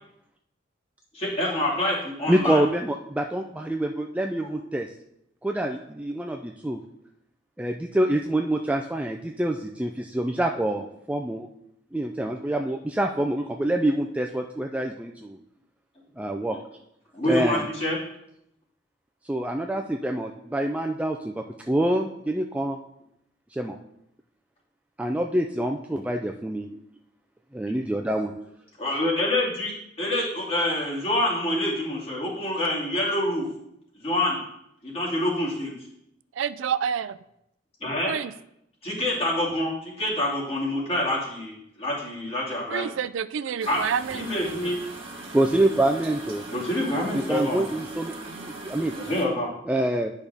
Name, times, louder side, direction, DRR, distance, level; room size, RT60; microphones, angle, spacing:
voice 1, 1.1-2.6 4.4-4.5 17.1-18.0 28.8-29.7 30.0-33.5 34.0-34.4 34.8-35.7 37.8-38.1 38.8-42.8 43.7-43.8 44.1-44.8 46.5-47.8 48.9-49.5, left 1 dB, 35° left, -6 dB, 2.6 m, -26 dB
voice 2, 2.3-4.9 5.4-6.8 7.6-11.5 11.9-15.4 16.2-16.6 17.3-17.6 19.3-22.8 23.5-23.8 25.0-26.7 27.5-28.3 45.3-46.4 47.1-48.1 48.6-48.9 49.7-50.1, right 1 dB, 5° right, 2 dB, 0.3 m, -26 dB
voice 3, 36.4-37.2 38.1-38.3 42.7-44.7 48.2-48.8, right 7 dB, 85° right, 15 dB, 0.4 m, -29 dB
sound 1, 43.6-49.2, right 2 dB, 30° right, 1.5 m, -40 dB
10.0 x 5.4 x 3.4 m, 0.78 s
head